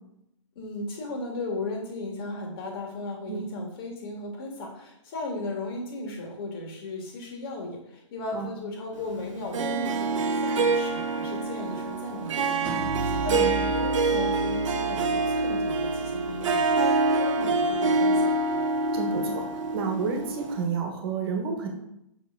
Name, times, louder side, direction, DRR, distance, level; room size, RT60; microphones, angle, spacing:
voice 1, 0.6-12.7 13.0-16.8 17.2-18.3, left 2 dB, 45° left, 1 dB, 2.1 m, -36 dB
Harp, 9.5-20.6, right 3 dB, 70° right, 1.1 m, -26 dB
sound 1, 12.7-18.3, right 1 dB, 5° right, 1.1 m, -38 dB
voice 2, 13.3-13.6 18.9-19.5 19.7-21.7, right 5 dB, 45° right, 3 dB, 1.5 m, -30 dB
5.9 x 5.5 x 3.9 m, 0.81 s
hypercardioid pair, 145°, 17 cm